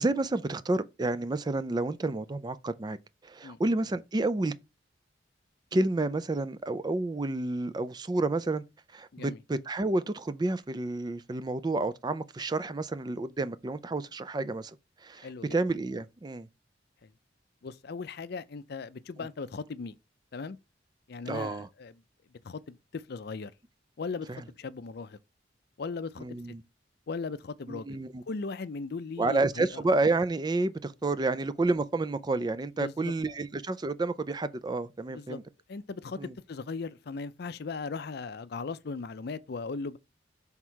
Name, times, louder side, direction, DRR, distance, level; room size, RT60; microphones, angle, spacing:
voice 1, 0.0-3.0 3.2-4.5 5.7-8.6 8.9-14.8 15.0-16.5 21.3-21.7 24.3-24.4 26.2-26.6 27.7-28.2 29.2-35.4 36.2-36.3, right 2 dB, 25° right, 0.4 m, -30 dB
voice 2, 15.2-15.5 17.0-17.1 17.6-20.0 20.3-20.6 21.1-21.9 22.4-23.5 24.0-25.2 25.8-26.3 27.1-28.0 28.3-29.7 32.8-33.1 35.1-35.4 35.7-40.0, left 4 dB, 60° left, 0.5 m, -38 dB
6.1 x 3.6 x 4.6 m
head